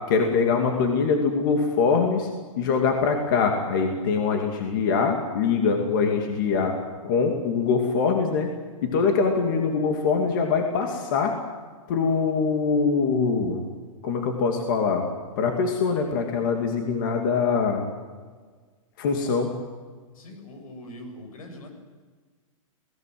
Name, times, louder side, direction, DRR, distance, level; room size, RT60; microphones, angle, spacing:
voice 1, 0.1-2.3 2.6-6.8 7.0-8.5 8.8-11.3 11.9-13.6 14.0-15.1 15.4-17.8 19.0-19.5, left 5 dB, 35° left, 3 dB, 2.6 m, -23 dB
voice 2, 20.1-21.7, left 1 dB, 85° left, 5 dB, 7.7 m, -42 dB
29.5 x 18.5 x 7.9 m, 1.5 s
hypercardioid pair, 175°, 18 cm